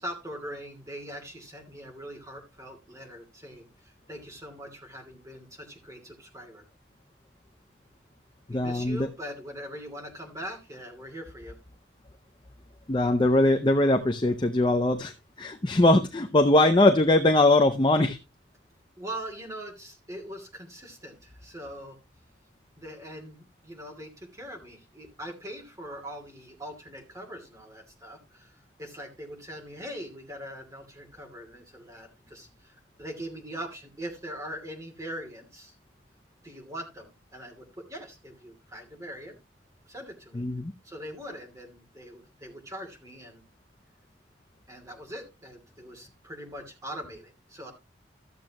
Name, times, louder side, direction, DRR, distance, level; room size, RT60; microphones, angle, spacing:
voice 1, 0.0-6.6 8.5-11.6 19.0-22.0 22.8-35.7 36.4-39.3 39.9-40.4 40.8-43.4 44.7-47.7, equal, 15° right, 1 dB, 2.6 m, -42 dB
voice 2, 8.5-9.1 12.9-18.2 40.3-40.7, left 2 dB, 25° left, 6 dB, 0.6 m, -21 dB
14.0 x 7.5 x 3.0 m, 0.25 s
head